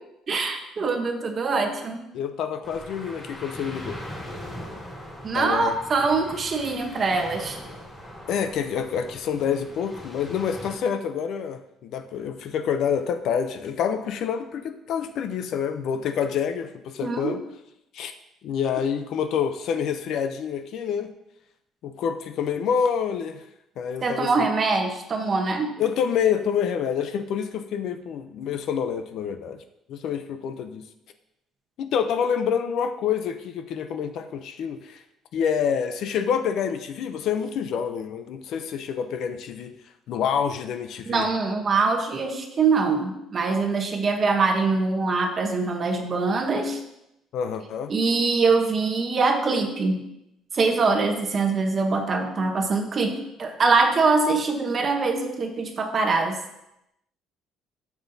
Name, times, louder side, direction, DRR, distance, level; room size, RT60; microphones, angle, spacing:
voice 1, 0.3-2.0 5.2-7.6 17.0-17.4 24.0-25.8 41.1-46.8 47.9-50.0 50.5-56.4, right 4 dB, 30° right, 5 dB, 1.0 m, -23 dB
voice 2, 2.1-4.0 5.3-5.8 8.3-17.4 17.9-18.1 18.4-21.1 21.8-23.4 23.8-24.5 25.8-29.6 29.9-30.8 31.8-35.0 35.3-39.7 40.1-41.3 47.3-47.9, left 7 dB, 55° left, 8 dB, 0.6 m, -27 dB
sound 1, 2.6-10.8, equal, ahead, 2.7 m, -40 dB
12.5 x 7.2 x 2.7 m, 0.85 s
cardioid pair, 165°, 0 cm